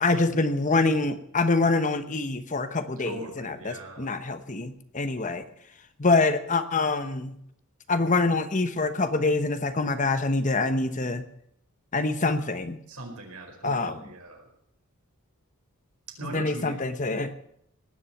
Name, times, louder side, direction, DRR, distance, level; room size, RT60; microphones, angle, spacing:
voice 1, 0.0-5.4 6.0-7.4 7.9-11.2 11.9-12.8 13.6-14.0 16.2-17.4, left 3 dB, 35° left, 10 dB, 1.0 m, -25 dB
voice 2, 3.0-4.1 12.9-14.4 16.2-16.9, right 2 dB, 75° right, 1 dB, 4.8 m, -40 dB
19.0 x 7.5 x 9.0 m, 0.72 s
head